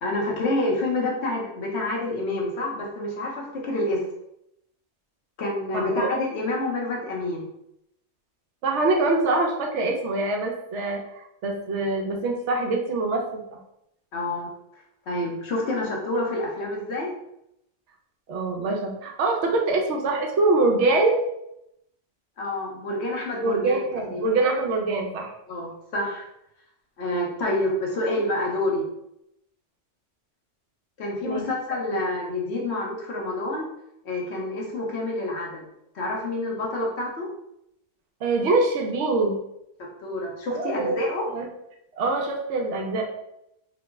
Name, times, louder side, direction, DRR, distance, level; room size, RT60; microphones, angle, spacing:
voice 1, 0.0-4.1 5.4-7.5 14.1-14.5 15.1-17.1 22.4-23.8 24.1-24.3 25.5-26.2 27.0-28.8 31.0-33.7 34.0-35.7 35.9-37.3 39.8-41.3, left 1 dB, 65° left, -1 dB, 1.0 m, -28 dB
voice 2, 5.7-6.1 8.6-13.6 18.3-21.2 23.4-25.3 31.2-31.4 38.2-39.4 40.5-41.0 41.3-41.4 42.0-43.0, right 2 dB, 75° right, 1 dB, 0.9 m, -24 dB
3.0 x 2.0 x 3.3 m, 0.81 s
omnidirectional pair, 1.2 m